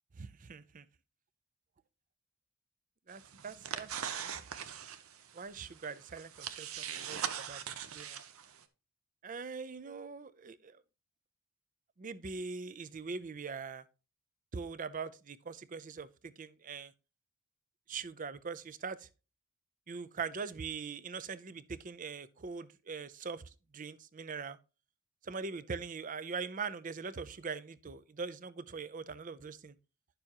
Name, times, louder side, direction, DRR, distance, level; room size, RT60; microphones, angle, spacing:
voice 1, 0.1-0.9 3.1-4.5 5.3-7.2 7.5-8.2 9.2-10.8 12.0-13.8 14.5-16.9 17.9-19.1 19.9-24.6 25.2-29.8, right 5 dB, 35° right, 0.5 m, -42 dB
sound 1, 3.1-8.6, right 8 dB, 70° right, 0.8 m, -42 dB
10.5 x 6.8 x 2.9 m
head